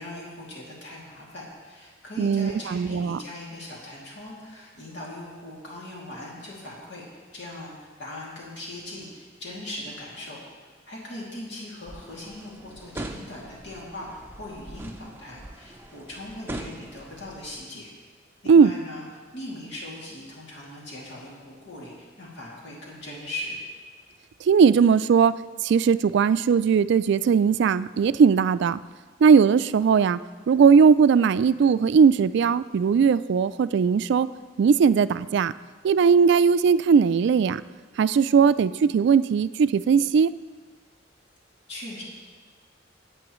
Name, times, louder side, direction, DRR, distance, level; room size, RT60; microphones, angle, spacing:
voice 1, 0.0-7.1 7.3-10.4 10.9-17.9 18.4-19.0 19.3-23.6 41.7-42.0, left 1 dB, 65° left, -4 dB, 2.6 m, -39 dB
voice 2, 2.2-3.2 18.5-18.7 24.5-25.4 25.6-28.8 29.2-30.2 30.5-34.3 34.6-35.5 35.8-37.6 38.0-40.3, right 6 dB, 65° right, 15 dB, 0.3 m, -19 dB
sound 1, 11.9-17.6, right 1 dB, 10° right, 0.7 m, -41 dB
20.5 x 8.5 x 3.1 m, 1.5 s
head